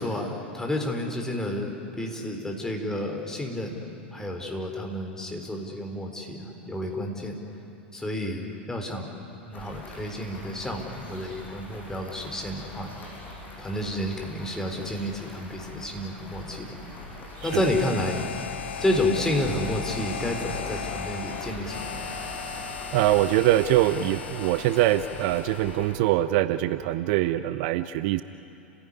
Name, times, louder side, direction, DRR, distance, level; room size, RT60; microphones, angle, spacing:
voice 1, 0.0-7.4 7.9-13.0 13.6-16.8 17.4-18.2 18.8-22.1, left 1 dB, 10° left, 2 dB, 4.3 m, -30 dB
sound 1, 9.5-25.9, left 2 dB, 30° left, 7.2 m, -41 dB
Harmonica, 17.4-26.0, left 8 dB, 75° left, 1.2 m, -37 dB
voice 2, 22.9-28.2, right 14 dB, 50° right, 13 dB, 0.7 m, -23 dB
30.0 x 16.5 x 9.9 m, 2.8 s
figure-of-eight pair, 90°, 6 cm